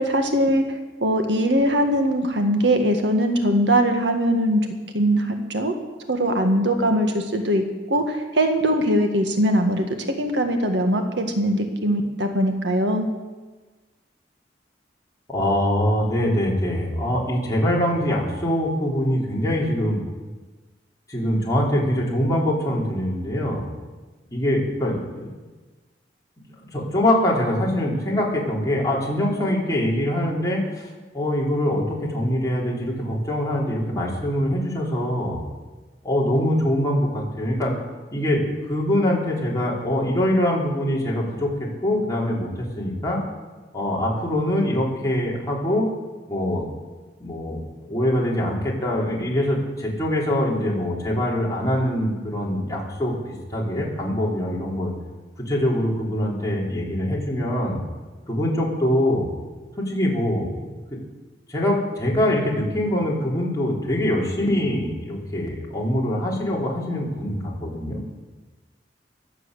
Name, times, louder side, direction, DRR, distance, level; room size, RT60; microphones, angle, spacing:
voice 1, 0.0-4.7 4.9-5.7 6.1-9.9 10.1-13.1, equal, 90° right, 5 dB, 1.9 m, -21 dB
voice 2, 15.3-20.0 21.1-23.6 24.3-25.3 26.7-35.4 36.0-37.7 38.1-43.2 43.7-45.9 46.3-46.6 47.2-47.6 47.9-53.1 53.5-54.9 55.4-57.8 58.3-59.3 59.8-60.7 61.5-68.1, left 1 dB, 20° left, -4 dB, 4.2 m, -23 dB
22.0 x 7.8 x 8.1 m, 1.3 s
head